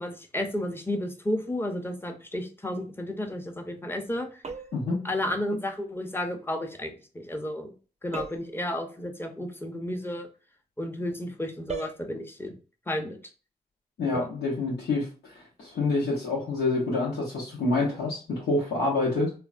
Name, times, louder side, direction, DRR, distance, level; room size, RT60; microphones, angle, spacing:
voice 1, 0.0-4.4 5.0-7.7 8.0-10.3 10.8-12.5 12.9-13.2 14.1-14.3, left 1 dB, 10° left, 4 dB, 0.8 m, -32 dB
sound 1, 4.4-4.9 8.1-8.6 11.7-12.0, right 5 dB, 40° right, 0.6 m, -37 dB
voice 2, 4.7-5.0 14.0-19.3, left 2 dB, 85° left, -6 dB, 0.9 m, -27 dB
3.2 x 2.1 x 2.4 m, 0.37 s
cardioid pair, 50°, 17 cm